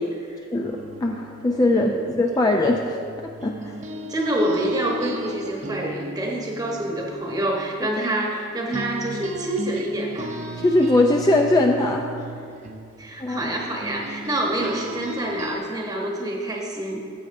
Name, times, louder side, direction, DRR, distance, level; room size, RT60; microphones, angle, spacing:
voice 1, 0.0-0.4 1.7-2.0 4.1-10.3 13.0-17.0, right 1 dB, 20° right, -1 dB, 1.0 m, -27 dB
voice 2, 0.5-2.9 3.4-3.7 10.6-12.0 13.2-13.5, left 2 dB, 20° left, 1 dB, 0.4 m, -20 dB
sound 1, 0.6-8.4 8.7-15.6, right 1 dB, 35° right, 0.5 m, -36 dB
14.0 x 7.7 x 2.6 m, 2.4 s
head